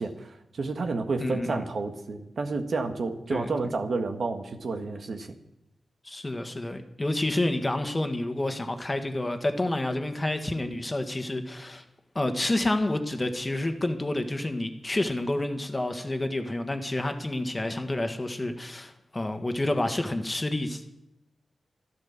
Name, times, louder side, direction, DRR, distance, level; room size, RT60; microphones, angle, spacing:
voice 1, 0.0-5.3, right 3 dB, 65° right, 5 dB, 1.6 m, -30 dB
voice 2, 1.2-1.6 3.3-3.5 6.0-11.8 12.1-20.9, left 1 dB, 25° left, 6 dB, 1.6 m, -29 dB
12.5 x 12.0 x 7.2 m, 0.89 s
cardioid pair, 75°, 0 cm